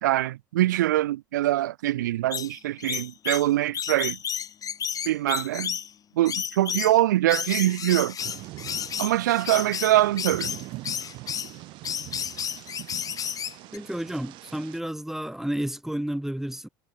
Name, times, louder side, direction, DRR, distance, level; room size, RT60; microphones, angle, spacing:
voice 1, 0.0-4.2 5.1-5.8 6.2-8.2 9.0-10.5, right 15 dB, 75° right, 0.4 m, -23 dB
sound 1, 2.3-5.9 6.3-7.0 7.3-11.5 11.8-13.8, left 8 dB, 35° left, 2.1 m, -32 dB
Thunder / Rain, 8.2-14.8, right 20 dB, 60° right, 7.1 m, -42 dB
voice 2, 13.7-16.7, right 1 dB, 5° right, 5.3 m, -31 dB
hypercardioid pair, 65°, 10 cm